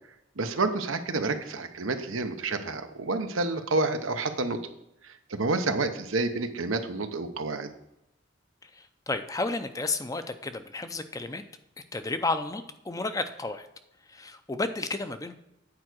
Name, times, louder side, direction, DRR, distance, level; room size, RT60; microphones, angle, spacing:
voice 1, 0.4-4.6 5.3-7.7, right 3 dB, 85° right, 8 dB, 0.9 m, -29 dB
voice 2, 8.6-11.4 11.9-13.7 14.1-15.3, left 3 dB, 15° left, 9 dB, 0.5 m, -32 dB
8.8 x 4.7 x 6.2 m, 0.82 s
head